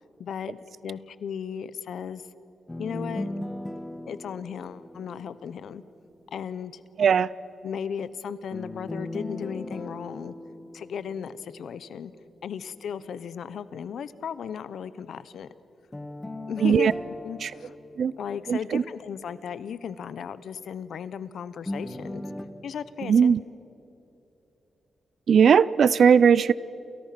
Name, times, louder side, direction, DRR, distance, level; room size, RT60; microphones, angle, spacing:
voice 1, 0.2-2.3 2.8-3.3 4.1-5.8 6.3-6.8 7.6-10.3 10.7-12.1 12.4-15.5 16.5-16.9 17.2-17.8 18.2-22.2 22.6-23.3, left 7 dB, 75° left, 15 dB, 1.0 m, -35 dB
sound 1, 2.7-5.8 8.5-11.8 15.9-19.0 21.6-22.4, left 1 dB, 15° left, 1.8 m, -38 dB
voice 2, 7.0-7.3 16.6-16.9 17.4-17.5 18.0-18.1 18.5-18.8 23.1-23.4 25.3-26.5, right 7 dB, 65° right, 19 dB, 0.5 m, -18 dB
29.0 x 29.0 x 6.0 m, 3.0 s
cardioid pair, 115°, 0 cm